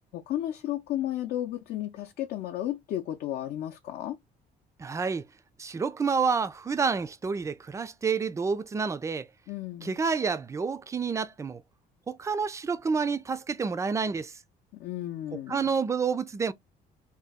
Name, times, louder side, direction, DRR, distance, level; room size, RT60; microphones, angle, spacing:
voice 1, 0.1-4.2 9.5-10.0 14.7-15.7, left 12 dB, 70° left, 0.5 m, -33 dB
voice 2, 4.8-5.3 5.6-9.3 9.8-11.6 12.1-14.3 15.5-16.5, right 5 dB, 20° right, 0.3 m, -29 dB
2.8 x 2.2 x 3.4 m
cardioid pair, 110°, 17 cm